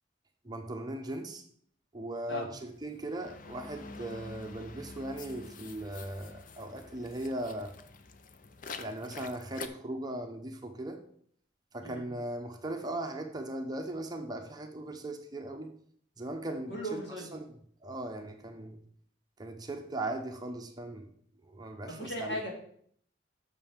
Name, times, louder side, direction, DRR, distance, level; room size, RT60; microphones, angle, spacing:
voice 1, 0.4-1.4 1.9-7.8 8.8-11.0 11.7-15.7 16.2-17.0 17.3-17.5 17.8-18.8 19.4-21.1 21.4-22.4, right 1 dB, 20° right, 4 dB, 0.8 m, -38 dB
sound 1, 2.7-9.7, left 4 dB, 45° left, 0.6 m, -47 dB
voice 2, 16.7-17.3 21.9-22.5, equal, 65° left, -2 dB, 3.0 m, -37 dB
6.8 x 5.5 x 7.2 m, 0.63 s
head